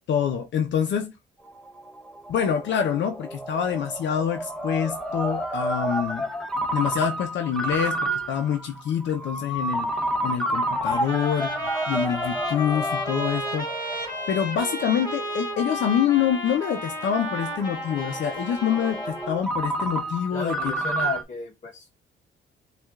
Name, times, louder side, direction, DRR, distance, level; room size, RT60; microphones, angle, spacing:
voice 1, 0.1-1.1 2.3-6.3 6.7-20.8, left 8 dB, 65° left, 0.6 m, -26 dB
Ringtone, 1.5-21.2, right 1 dB, ahead, 0.8 m, -31 dB
Trumpet, 10.5-19.4, equal, 20° left, 1.9 m, -33 dB
voice 2, 20.3-21.9, left 4 dB, 40° left, 0.9 m, -32 dB
6.2 x 2.4 x 2.3 m
cardioid pair, 90°, 20 cm